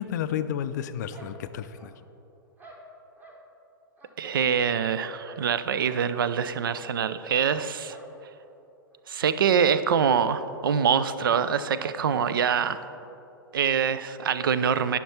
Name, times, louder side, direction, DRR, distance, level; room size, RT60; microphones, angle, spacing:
voice 1, 0.0-2.0, left 9 dB, 50° left, 11 dB, 0.4 m, -31 dB
sound 1, 1.1-2.1 2.6-3.4 4.0-5.5 5.8-6.0 6.3-6.5 6.8-7.0 7.9-8.2 8.4-8.5 8.9-9.0 9.8-10.0 10.2-10.3 11.2-11.5 12.2-12.4, right 2 dB, 15° right, 1.0 m, -51 dB
voice 2, 4.2-8.0 9.1-12.8 13.5-15.0, right 7 dB, 70° right, 13 dB, 0.4 m, -24 dB
9.9 x 5.9 x 4.3 m, 2.9 s
figure-of-eight pair, 105°, 12 cm